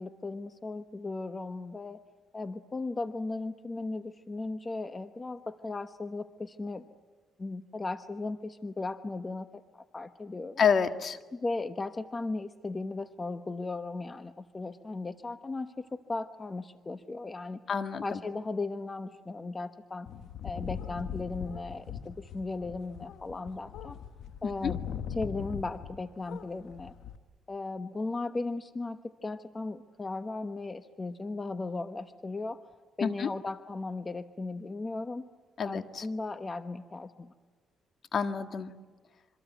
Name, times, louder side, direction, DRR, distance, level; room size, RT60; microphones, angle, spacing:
voice 1, 0.0-2.0 2.3-6.8 7.4-9.5 9.7-10.6 11.3-17.6 18.0-20.1 20.4-24.0 24.4-24.8 25.2-26.9 27.5-32.6 33.0-35.2 35.6-37.3, left 3 dB, 25° left, 9 dB, 1.0 m, -36 dB
voice 2, 10.6-11.2 17.7-18.2 24.4-24.7 33.0-33.3 35.6-36.1 38.1-38.7, left 6 dB, 50° left, 8 dB, 1.7 m, -28 dB
sound 1, 20.1-26.0 26.2-27.2, left 8 dB, 75° left, 1.4 m, -40 dB
26.5 x 24.5 x 9.2 m, 1.4 s
cardioid pair, 90°, 0 cm